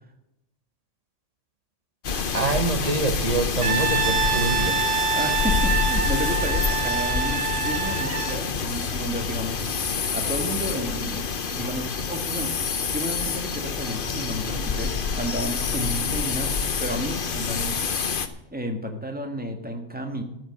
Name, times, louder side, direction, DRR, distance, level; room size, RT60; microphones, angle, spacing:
sound 1, 2.0-18.3, left 5 dB, 45° left, 1.0 m, -27 dB
voice 1, 2.1-4.8, right 2 dB, 30° right, 6 dB, 1.5 m, -25 dB
Brass instrument, 3.6-8.4, right 5 dB, 85° right, 1.5 m, -26 dB
voice 2, 5.1-9.6 10.1-11.3 11.5-16.5 16.8-18.1 18.5-20.2, equal, 5° right, 4 dB, 1.7 m, -32 dB
14.0 x 6.3 x 9.5 m, 0.87 s
omnidirectional pair, 1.3 m